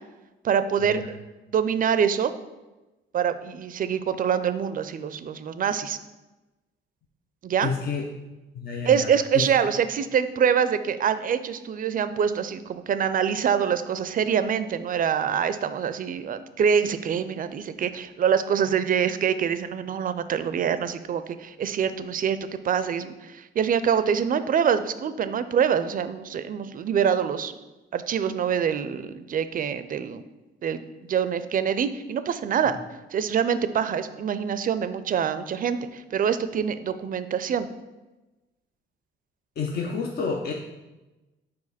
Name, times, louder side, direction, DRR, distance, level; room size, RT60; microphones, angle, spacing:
voice 1, 0.4-1.2 1.5-2.3 3.1-6.0 7.4-7.7 8.9-22.4 22.6-27.5 27.9-30.2 30.6-32.8 33.1-37.7, right 7 dB, 45° right, 12 dB, 0.4 m, -25 dB
voice 2, 7.6-8.0 8.5-9.5 39.6-40.5, left 5 dB, 55° left, 1 dB, 0.6 m, -29 dB
5.0 x 4.6 x 4.1 m, 1.1 s
cardioid pair, 90°, 20 cm